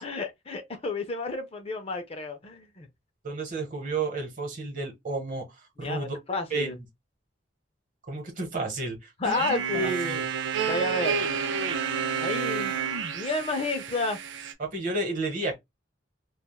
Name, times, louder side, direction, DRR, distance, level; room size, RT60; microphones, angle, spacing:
voice 1, 0.0-2.9 5.8-6.8 9.2-10.2 10.7-11.2 12.2-12.8 13.1-14.2, left 2 dB, 30° left, 0.5 m, -31 dB
voice 2, 3.2-6.2 6.5-6.8 8.1-10.3 14.6-15.6, right 3 dB, 45° right, 1.0 m, -32 dB
sound 1, 9.2-14.5, right 6 dB, 70° right, 0.4 m, -30 dB
3.3 x 2.2 x 2.2 m
head